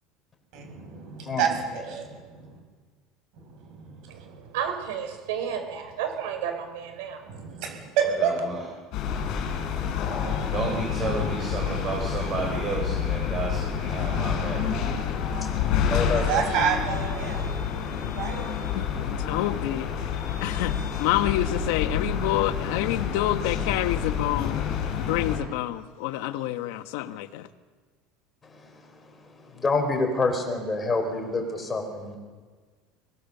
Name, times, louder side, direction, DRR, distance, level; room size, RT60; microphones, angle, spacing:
voice 1, 0.5-2.6 3.4-4.2 7.3-8.3 15.5-17.5 17.9-18.5, right 7 dB, 55° right, 4 dB, 6.3 m, -29 dB
voice 2, 4.1-7.2, right 8 dB, 85° right, 6 dB, 5.5 m, -32 dB
voice 3, 8.2-8.6 10.5-14.6, right 4 dB, 25° right, 1 dB, 3.8 m, -31 dB
sound 1, 8.9-25.4, left 7 dB, 50° left, 4.5 m, -28 dB
voice 4, 15.3-16.4 28.4-28.7 29.2-32.2, left 3 dB, 15° left, 3 dB, 4.4 m, -28 dB
voice 5, 18.7-19.9 20.4-20.7 21.0-24.7 25.0-27.4, left 14 dB, 70° left, 9 dB, 1.3 m, -28 dB
24.0 x 17.5 x 6.8 m, 1.5 s
cardioid pair, 160°, 0 cm